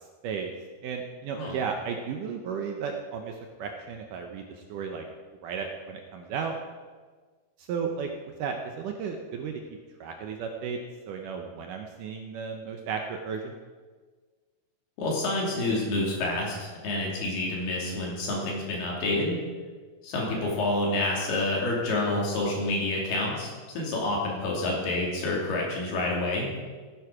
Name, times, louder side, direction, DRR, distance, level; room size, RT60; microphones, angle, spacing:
voice 1, 0.8-5.0 5.4-6.5 7.6-8.1 8.4-10.8 11.1-13.6 20.3-20.5, right 6 dB, 75° right, 3 dB, 2.0 m, -34 dB
voice 2, 15.0-19.4 20.0-26.5, left 2 dB, 80° left, -2 dB, 4.7 m, -28 dB
16.0 x 9.5 x 4.9 m, 1.5 s
omnidirectional pair, 4.5 m